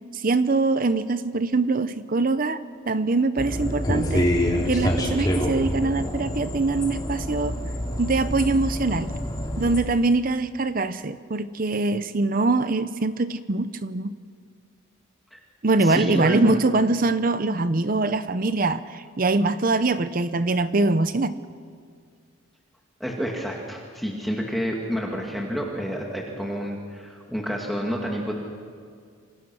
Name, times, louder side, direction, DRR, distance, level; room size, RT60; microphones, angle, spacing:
voice 1, 0.1-7.6 8.0-9.1 9.6-14.2 15.6-21.4, right 3 dB, 40° right, 12 dB, 0.7 m, -23 dB
sound 1, 3.4-9.8, equal, 20° left, 3.1 m, -26 dB
voice 2, 15.8-16.5 23.0-28.3, equal, ahead, -1 dB, 2.2 m, -29 dB
28.0 x 26.5 x 6.2 m, 2.1 s
head